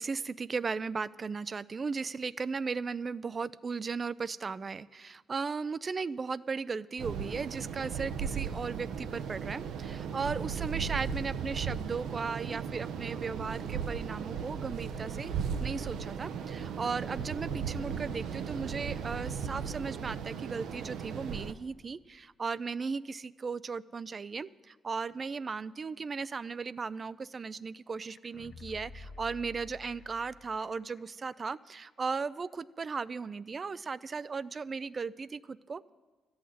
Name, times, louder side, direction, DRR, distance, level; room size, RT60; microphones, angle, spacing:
voice 1, 0.0-15.3 15.6-35.9, right 5 dB, 35° right, 18 dB, 0.4 m, -36 dB
sound 1, 7.0-21.5, right 7 dB, 80° right, 0.7 m, -36 dB
sound 2, 28.1-31.0 31.3-31.4, left 4 dB, 60° left, 0.7 m, -50 dB
13.5 x 6.4 x 9.3 m, 1.4 s
cardioid pair, 90°, 0 cm